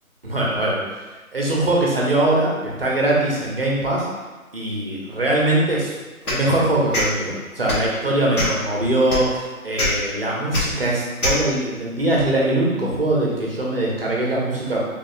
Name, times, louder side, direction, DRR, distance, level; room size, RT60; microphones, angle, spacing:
voice 1, 0.2-0.8 1.3-4.1 4.5-5.9 6.3-14.8, right 1 dB, 45° right, -4 dB, 0.5 m, -21 dB
sound 1, 6.2-6.4 6.9-7.1 7.6-7.9 8.3-8.6 9.1-9.2 9.8-9.9 10.5-10.6 11.2-11.4, left 1 dB, 80° left, 1.1 m, -22 dB
3.5 x 2.1 x 2.3 m, 1.2 s
figure-of-eight pair, 175°, 43 cm